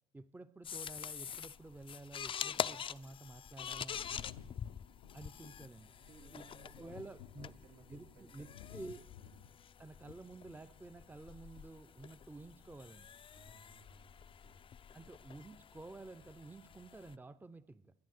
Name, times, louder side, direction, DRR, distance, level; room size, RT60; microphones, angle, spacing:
voice 1, 0.1-4.0 5.1-5.9 6.3-7.5 7.9-9.0 9.8-13.1 14.9-17.9, right 2 dB, 15° right, 13 dB, 0.8 m, -51 dB
sound 1, 0.6-17.2, left 8 dB, 40° left, 0.6 m, -46 dB
Thunder, 3.9-11.3 12.4-12.5, left 10 dB, 80° left, 0.8 m, -56 dB
voice 2, 4.1-4.6 6.0-7.1 7.3-8.5 9.2-9.4 13.3-14.6, right 3 dB, 80° right, 0 dB, 4.1 m, -61 dB
21.5 x 9.1 x 6.6 m, 0.94 s
hypercardioid pair, 55°, 13 cm